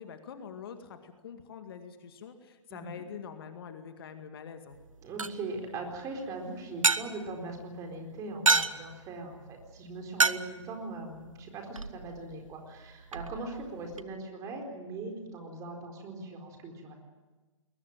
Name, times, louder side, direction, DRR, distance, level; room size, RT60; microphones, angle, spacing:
voice 1, 0.0-4.8, left 7 dB, 45° left, 7 dB, 2.0 m, -45 dB
voice 2, 2.7-3.0 5.0-17.0, right 2 dB, 20° right, 3 dB, 4.3 m, -40 dB
sound 1, 4.7-14.0, right 4 dB, 85° right, 1.1 m, -33 dB
21.0 x 19.5 x 9.1 m, 1.2 s
figure-of-eight pair, 130°, 17 cm